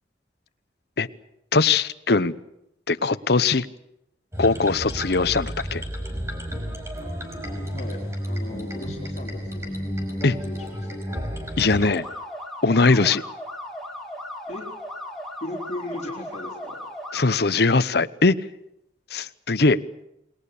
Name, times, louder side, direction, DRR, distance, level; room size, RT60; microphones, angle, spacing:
voice 1, 1.5-2.3 2.9-3.7 4.4-5.8 10.2-10.4 11.6-12.0 12.6-13.2 17.1-18.4 19.1-19.8, left 3 dB, 65° left, 13 dB, 0.9 m, -20 dB
sound 1, 4.3-12.0, equal, 15° right, 5.1 m, -32 dB
voice 2, 8.3-9.7 10.5-10.9 14.5-14.6 15.4-16.8, left 2 dB, 40° left, -2 dB, 4.5 m, -36 dB
sound 2, 11.8-17.2, left 1 dB, ahead, 4.4 m, -36 dB
29.0 x 21.0 x 6.9 m, 0.85 s
head